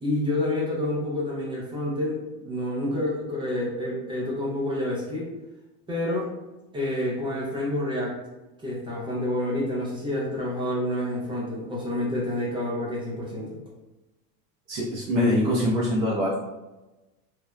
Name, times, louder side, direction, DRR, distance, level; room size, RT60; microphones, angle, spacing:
voice 1, 0.0-5.3 5.9-6.3 6.7-8.1 8.6-13.6, left 1 dB, 10° right, -5 dB, 0.4 m, -28 dB
voice 2, 14.7-16.4, left 1 dB, 60° right, -8 dB, 0.9 m, -23 dB
3.1 x 2.0 x 2.3 m, 1.1 s
supercardioid pair, 120°, 49 cm